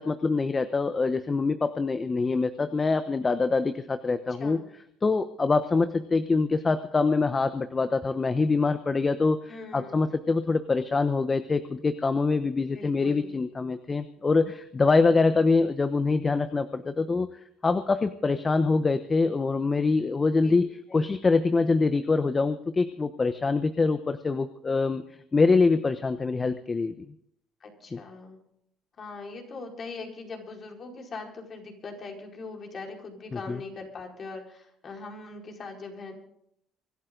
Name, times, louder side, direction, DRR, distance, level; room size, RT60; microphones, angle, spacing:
voice 1, 0.1-4.6 5.0-9.4 9.7-17.3 17.6-25.0 25.3-26.9 27.9-28.0 33.5-33.6, left 4 dB, 25° left, 11 dB, 1.0 m, -24 dB
voice 2, 4.3-4.7 9.5-10.0 12.7-13.3 20.4-20.5 20.9-21.1 27.6-28.4 29.0-36.1, left 3 dB, 45° left, 2 dB, 4.9 m, -41 dB
25.0 x 12.0 x 3.9 m, 0.71 s
supercardioid pair, 85°, 0 cm